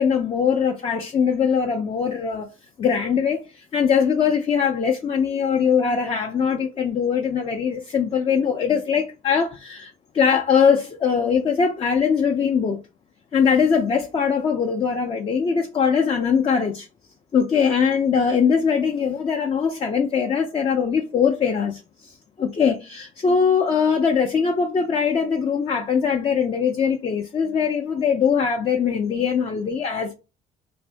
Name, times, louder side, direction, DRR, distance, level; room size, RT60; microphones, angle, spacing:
voice 1, 0.0-2.5 2.8-12.8 13.3-16.9 17.3-30.1, left 6 dB, 35° left, 0.5 m, -21 dB
2.6 x 2.6 x 3.4 m
cardioid pair, 110°, 17 cm